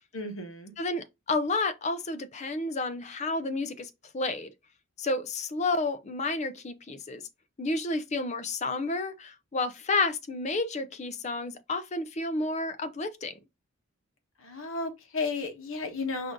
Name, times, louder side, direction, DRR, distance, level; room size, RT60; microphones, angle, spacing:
voice 1, 0.1-0.7 14.4-16.3, left 3 dB, 70° left, 1.1 m, -33 dB
voice 2, 0.8-4.5 5.0-7.2 7.6-13.3, left 3 dB, 30° left, 0.4 m, -31 dB
4.9 x 2.6 x 3.6 m
head